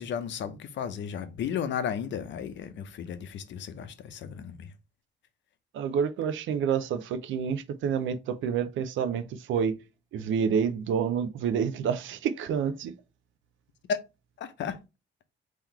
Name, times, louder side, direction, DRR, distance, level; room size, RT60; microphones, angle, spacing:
voice 1, 0.0-4.7 13.9-14.0 14.4-14.8, left 7 dB, 65° left, 0.7 m, -34 dB
voice 2, 5.7-9.8 10.1-12.9, right 7 dB, 75° right, 0.6 m, -28 dB
3.8 x 3.0 x 4.4 m
cardioid pair, 90°, 20 cm